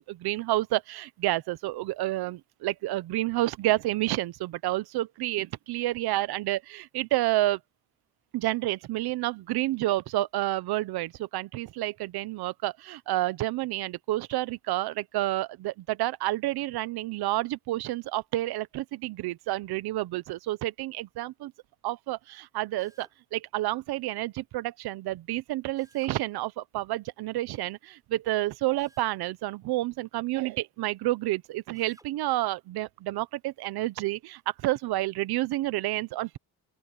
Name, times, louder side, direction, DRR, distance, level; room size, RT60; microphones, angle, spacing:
voice 1, 0.1-7.6 8.3-21.5 21.8-36.4, right 16 dB, 90° right, 0.8 m, -29 dB
Drill, 22.8-23.2 25.8-26.2 28.8-29.2 31.7-32.1, right 1 dB, 10° right, 6.0 m, -58 dB
open air
cardioid pair, 95°, 37 cm